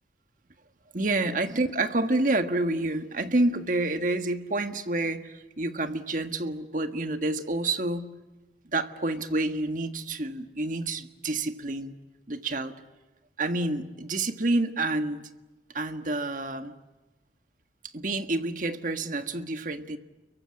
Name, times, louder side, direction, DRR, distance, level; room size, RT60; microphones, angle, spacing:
voice 1, 0.9-8.1 8.6-11.9 12.3-12.7 13.4-15.3 15.7-16.7 17.9-20.0, right 2 dB, 45° right, 8 dB, 1.6 m, -28 dB
29.5 x 23.0 x 8.6 m, 1.1 s
head